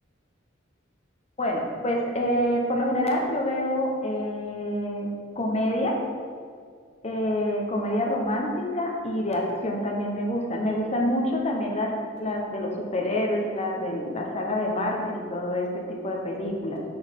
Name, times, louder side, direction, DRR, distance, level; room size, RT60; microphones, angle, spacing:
voice 1, 1.4-5.1 5.3-6.0 7.0-16.8, left 1 dB, 35° left, 1 dB, 1.0 m, -27 dB
6.3 x 6.2 x 3.6 m, 2.1 s
head